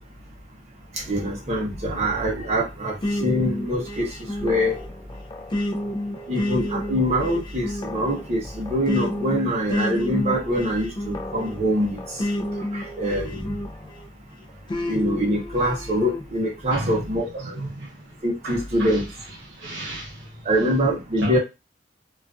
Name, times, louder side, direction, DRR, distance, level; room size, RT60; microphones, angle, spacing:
voice 1, 0.9-4.8 6.3-12.2 12.7-13.5 14.9-17.6 18.2-19.1 20.4-21.4, equal, 35° right, 0.7 m, -24 dB
sound 1, 3.0-14.1 14.7-16.2, left 1 dB, 25° left, 0.3 m, -30 dB
voice 2, 17.4-18.0 18.4-19.0 19.5-20.4 21.2-21.4, right 1 dB, 80° right, 0.9 m, -33 dB
2.3 x 2.3 x 2.3 m
head